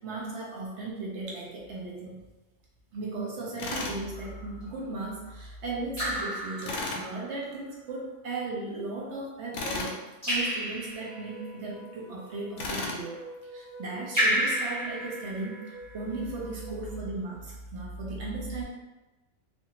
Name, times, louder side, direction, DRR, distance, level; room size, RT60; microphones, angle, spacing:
voice 1, 0.0-2.2 2.9-10.0 10.3-13.2 13.5-18.6, right 2 dB, 65° right, -3 dB, 1.0 m, -36 dB
Tools, 3.6-4.0 6.6-7.0 9.5-10.0 12.6-13.0, left 3 dB, 75° left, 0.9 m, -33 dB
Raindrop / Drip, 4.2-4.6 5.9-7.3 10.2-11.3 14.1-15.9, equal, 15° right, 1.0 m, -30 dB
sound 1, 11.0-17.0, right 1 dB, 40° left, 0.7 m, -48 dB
2.6 x 2.5 x 2.8 m, 1.1 s
omnidirectional pair, 1.3 m